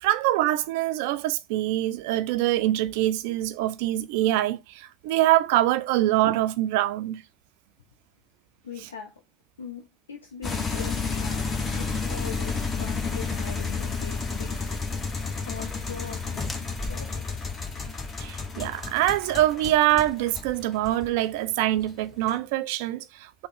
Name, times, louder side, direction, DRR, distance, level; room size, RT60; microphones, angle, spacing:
voice 1, 0.0-7.2 18.2-23.5, right 14 dB, 60° right, 0.3 m, -24 dB
voice 2, 8.6-9.2 9.6-11.5 11.7-14.7 15.5-16.5 16.9-17.5, left 7 dB, 80° left, 0.5 m, -41 dB
sound 1, 10.4-21.4 21.7-22.3, left 4 dB, 30° left, 1.0 m, -31 dB
sound 2, 16.3-20.9, left 1 dB, 10° left, 0.5 m, -44 dB
3.5 x 2.0 x 3.6 m
figure-of-eight pair, 70°, 0 cm